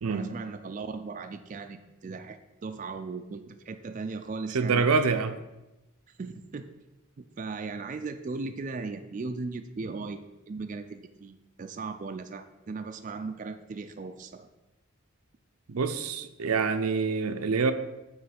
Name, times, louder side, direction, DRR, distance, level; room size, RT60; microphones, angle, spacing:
voice 1, 0.1-4.8 6.1-6.7 7.2-14.5, right 4 dB, 35° right, 7 dB, 0.3 m, -37 dB
voice 2, 4.5-5.4 15.7-17.7, right 4 dB, 90° right, 9 dB, 0.6 m, -26 dB
9.4 x 3.2 x 5.8 m, 0.99 s
head